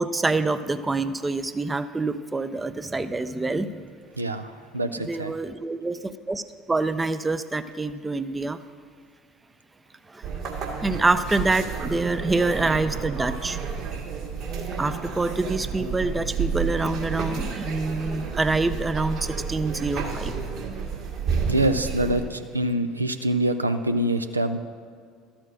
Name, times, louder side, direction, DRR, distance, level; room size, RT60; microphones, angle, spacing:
voice 1, 0.0-4.0 5.0-6.4 6.7-8.6 10.1-10.3 10.8-13.6 14.8-20.4, right 3 dB, 15° right, 12 dB, 0.4 m, -26 dB
voice 2, 4.2-5.3 21.5-24.6, right 1 dB, 90° right, 8 dB, 0.3 m, -25 dB
sound 1, 10.2-22.2, right 6 dB, 55° right, 1.7 m, -31 dB
12.5 x 4.4 x 6.4 m, 2.2 s
figure-of-eight pair, 65°, 0 cm